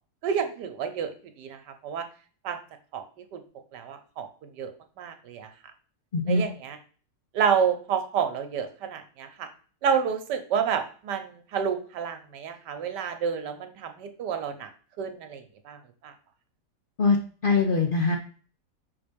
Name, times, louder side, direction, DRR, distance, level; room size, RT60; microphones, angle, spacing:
voice 1, 0.2-1.1 1.4-2.0 2.4-2.6 2.9-3.0 3.3-3.4 3.7-4.7 5.0-5.5 6.3-6.8 7.3-9.5 9.8-14.7 15.0-15.8 16.0-16.1, right 7 dB, 90° right, 7 dB, 1.5 m, -29 dB
voice 2, 6.1-6.4 17.0-17.2 17.4-18.2, left 4 dB, 50° left, 2 dB, 0.6 m, -22 dB
5.9 x 3.9 x 5.2 m, 0.40 s
omnidirectional pair, 1.8 m